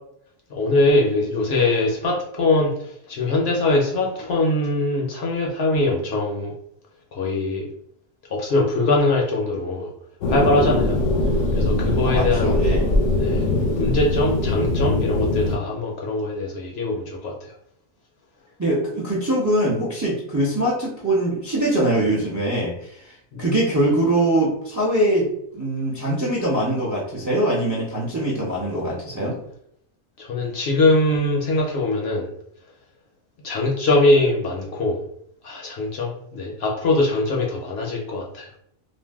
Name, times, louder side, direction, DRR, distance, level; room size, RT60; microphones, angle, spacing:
voice 1, 0.5-6.5 7.1-7.7 8.3-9.9 10.3-11.0 11.5-12.8 13.2-13.5 13.8-17.5 23.3-23.4 30.2-32.3 33.4-35.0 35.4-38.5, left 2 dB, 65° left, -1 dB, 0.7 m, -22 dB
sound 1, 10.2-15.6, left 2 dB, 80° left, 1.0 m, -21 dB
voice 2, 12.0-12.9 18.6-23.1 23.4-29.4, right 1 dB, 25° right, -4 dB, 0.4 m, -22 dB
2.5 x 2.1 x 3.3 m, 0.72 s
omnidirectional pair, 1.3 m